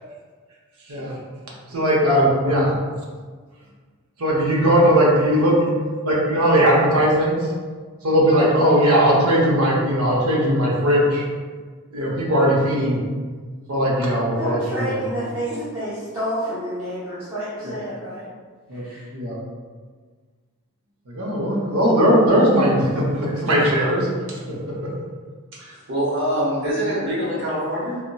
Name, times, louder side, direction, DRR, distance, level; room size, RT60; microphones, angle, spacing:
voice 1, 1.7-2.8 4.2-5.7 6.0-7.5 8.0-11.3 11.9-13.0 13.7-15.3 17.6-17.8 18.7-18.8 19.1-19.4 21.1-24.1 24.5-24.9, equal, 80° right, -4 dB, 0.7 m, -19 dB
voice 2, 14.4-18.3 18.7-19.1, equal, 10° right, -12 dB, 0.6 m, -29 dB
voice 3, 25.6-28.0, equal, 55° right, -6 dB, 0.9 m, -24 dB
3.9 x 2.1 x 2.2 m, 1.5 s
head